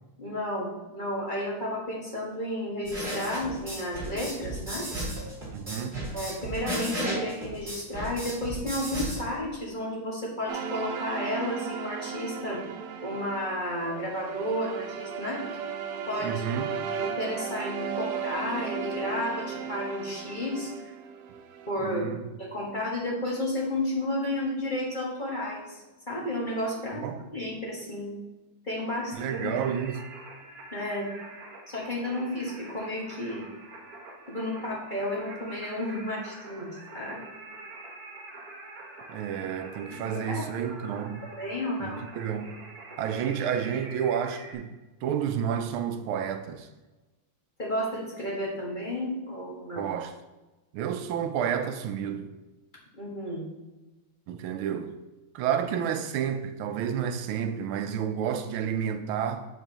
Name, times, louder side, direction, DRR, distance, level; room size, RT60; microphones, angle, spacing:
voice 1, 0.2-4.9 6.1-12.6 13.0-15.4 16.1-16.4 17.0-20.7 21.7-27.0 27.3-28.1 28.6-29.5 30.7-31.1 31.7-33.5 34.3-37.2 39.9-40.0 40.3-40.4 41.2-42.0 47.6-49.9 52.9-53.4, left 1 dB, 25° left, 1.6 m, -32 dB
sound 1, 2.8-9.2, right 1 dB, 20° right, 2.7 m, -34 dB
voice 2, 5.5-6.2 16.2-16.7 21.8-22.2 26.9-27.3 29.1-30.2 39.1-41.3 41.8-42.6 43.0-46.7 49.8-50.2 50.7-52.3 54.3-54.9 55.3-59.5, right 8 dB, 90° right, 1.5 m, -30 dB
sound 2, 10.5-21.7, right 7 dB, 70° right, 1.1 m, -35 dB
Singing, 29.1-44.5, right 2 dB, 50° right, 1.4 m, -46 dB
7.8 x 7.5 x 2.9 m
omnidirectional pair, 2.3 m